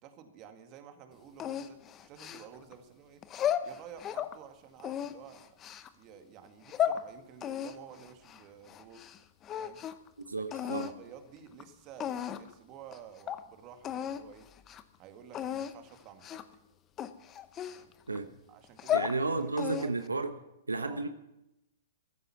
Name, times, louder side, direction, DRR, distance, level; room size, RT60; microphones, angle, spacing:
voice 1, 0.0-3.2 3.6-5.6 6.0-9.0 9.5-9.8 10.3-14.5 15.0-16.4 17.7-17.9 18.5-20.0 20.8-21.0, right 8 dB, 35° right, 6 dB, 2.0 m, -51 dB
sound 1, 1.4-2.7 3.2-4.3 4.8-5.9 6.5-7.0 7.4-9.2 9.4-10.1 10.5-10.9 11.6-11.7 12.0-12.5 12.9-13.0 13.3-13.4 13.8-14.2 14.6-14.8 15.3-15.7 16.2-16.5 17.0-18.2 18.6-19.2 19.6-20.1, left 10 dB, 25° left, 0.9 m, -34 dB
voice 2, 10.3-10.9 18.1-18.3 18.9-20.3 20.7-21.1, right 3 dB, 90° right, 9 dB, 1.1 m, -32 dB
14.5 x 14.0 x 5.9 m, 0.87 s
figure-of-eight pair, 115°, 0 cm